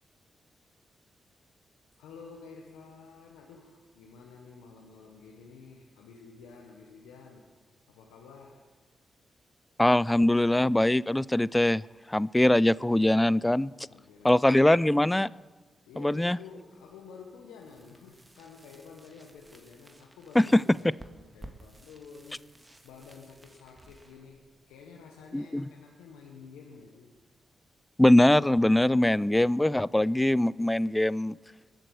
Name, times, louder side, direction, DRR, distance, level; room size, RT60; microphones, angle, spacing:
voice 1, 2.0-7.5 7.9-8.6 13.9-15.0 15.8-22.5 22.8-27.1, left 5 dB, 90° left, 1 dB, 1.1 m, -50 dB
voice 2, 9.8-11.8 12.1-13.7 14.2-15.3 16.0-16.4 20.4-20.6 25.3-25.7 28.0-31.4, left 1 dB, 15° left, 22 dB, 0.3 m, -22 dB
sound 1, 17.6-25.3, right 1 dB, 20° right, 1.7 m, -54 dB
21.0 x 7.9 x 4.8 m, 1.3 s
supercardioid pair, 40°, 0 cm